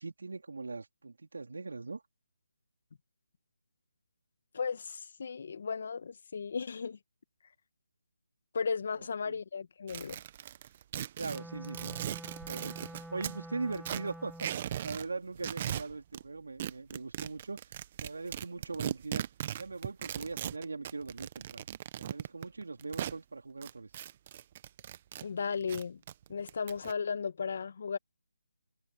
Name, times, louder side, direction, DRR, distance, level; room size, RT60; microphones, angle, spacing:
voice 1, 0.0-2.0 9.3-9.4 11.2-12.0 12.5-17.6 18.0-19.2 19.6-21.6 22.0-23.9, right 3 dB, 75° right, 3.7 m, -40 dB
voice 2, 4.5-7.0 8.5-10.2 25.2-26.0 26.3-28.0, left 5 dB, 55° left, 2.0 m, -35 dB
sound 1, 9.9-13.4 13.7-15.1 15.3-16.2 16.6-23.2 23.6-25.2 25.5-26.9, right 11 dB, 35° right, 1.2 m, -38 dB
Wind instrument woodwind instrument, 11.3-14.7, right 1 dB, ahead, 0.9 m, -47 dB
figure-of-eight pair, 155°, 0 cm